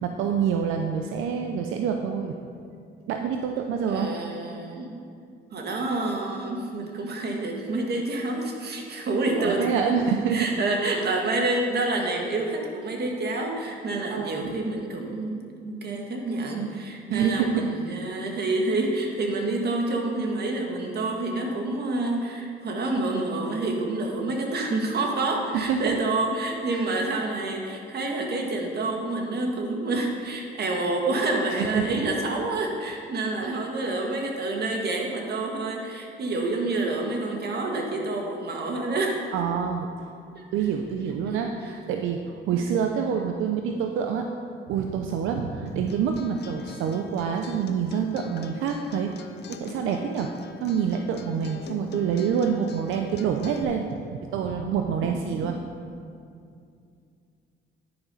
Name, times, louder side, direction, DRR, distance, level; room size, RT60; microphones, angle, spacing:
voice 1, 0.0-2.4 3.1-4.1 9.4-10.5 14.1-14.6 17.1-17.8 25.7-26.0 26.7-26.9 31.6-32.1 33.4-33.5 39.3-39.9 40.5-44.3 44.7-49.1 49.6-50.3 50.6-55.6, right 7 dB, 85° right, 4 dB, 0.6 m, -27 dB
voice 2, 3.9-4.9 5.5-9.9 10.3-39.2 40.3-40.7 41.6-41.7, right 2 dB, 55° right, 1 dB, 1.6 m, -28 dB
Acoustic guitar, 45.7-53.6, left 6 dB, 60° left, 0.6 m, -43 dB
9.7 x 5.1 x 5.5 m, 2.4 s
cardioid pair, 90°, 20 cm